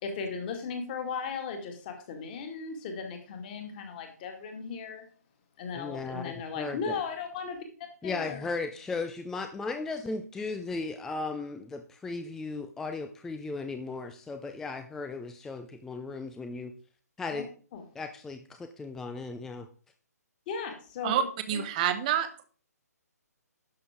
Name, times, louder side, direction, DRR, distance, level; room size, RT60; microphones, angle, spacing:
voice 1, 0.0-5.0 5.6-7.6 8.0-8.5 17.3-17.4 17.7-17.8 20.5-21.3 21.5-21.6, left 5 dB, 30° left, 4 dB, 2.2 m, -36 dB
voice 2, 5.7-7.0 8.0-16.7 17.2-17.5 18.0-19.7, left 3 dB, 5° left, 7 dB, 0.4 m, -36 dB
voice 3, 21.0-22.4, right 9 dB, 25° right, 11 dB, 1.0 m, -28 dB
11.5 x 6.7 x 3.7 m, 0.42 s
figure-of-eight pair, 135°, 9 cm